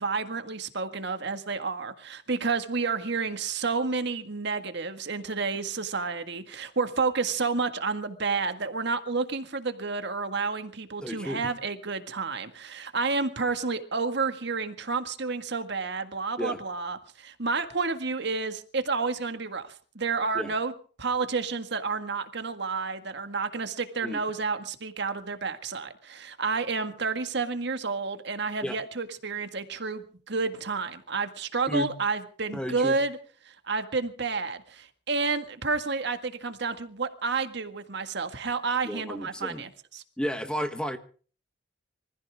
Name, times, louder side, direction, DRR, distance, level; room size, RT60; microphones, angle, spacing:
voice 1, 0.0-20.7 21.0-33.2 33.4-40.0, right 4 dB, 60° right, 8 dB, 1.8 m, -30 dB
voice 2, 11.0-11.5 16.4-16.6 20.3-20.5 24.0-24.2 28.6-28.8 31.7-31.9 32.5-32.9 38.8-39.6 40.2-41.0, equal, 5° left, 8 dB, 1.2 m, -32 dB
26.0 x 15.0 x 3.6 m, 0.41 s
head